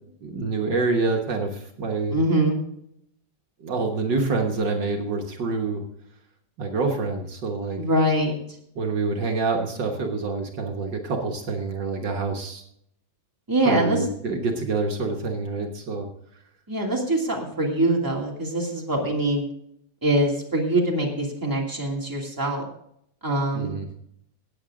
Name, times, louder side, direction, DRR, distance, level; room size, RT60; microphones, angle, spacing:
voice 1, 0.2-2.2 3.6-5.8 6.6-7.8 8.8-12.6 13.7-16.1 23.6-23.9, right 3 dB, 65° right, 2 dB, 2.0 m, -26 dB
voice 2, 2.1-2.6 7.8-8.4 13.5-14.0 16.7-19.5 20.0-22.7 23.2-23.8, right 1 dB, 10° right, -1 dB, 2.6 m, -23 dB
17.5 x 8.0 x 3.7 m, 0.71 s
omnidirectional pair, 2.1 m